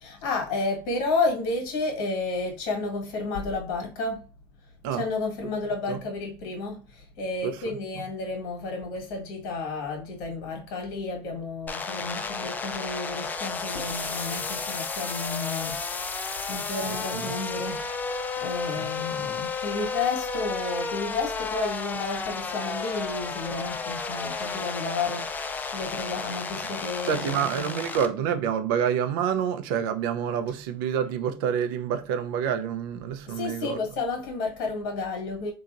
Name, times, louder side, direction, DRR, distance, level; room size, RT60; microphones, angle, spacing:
voice 1, 0.0-4.3 4.9-15.8 16.1-17.8 18.4-27.5 33.3-35.5, left 3 dB, 80° left, 1.4 m, -31 dB
sound 1, 11.7-28.1, left 4 dB, 15° left, 0.3 m, -32 dB
voice 2, 27.1-33.8, right 8 dB, 85° right, 0.5 m, -27 dB
3.9 x 2.8 x 2.4 m
cardioid pair, 140°, 11 cm